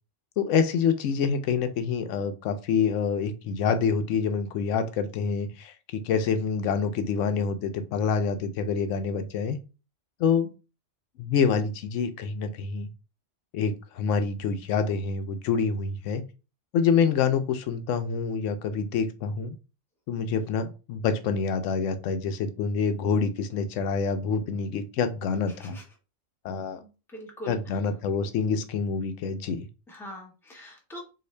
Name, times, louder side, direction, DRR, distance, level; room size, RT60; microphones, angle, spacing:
voice 1, 0.4-9.6 10.2-10.5 11.2-12.9 13.5-16.2 16.7-19.5 20.1-25.8 26.4-26.8 27.5-29.7, left 6 dB, 90° left, 8 dB, 0.9 m, -26 dB
voice 2, 25.5-25.8 26.8-27.6 29.9-31.0, equal, ahead, 0 dB, 0.8 m, -43 dB
3.7 x 2.5 x 3.2 m, 0.32 s
omnidirectional pair, 1.3 m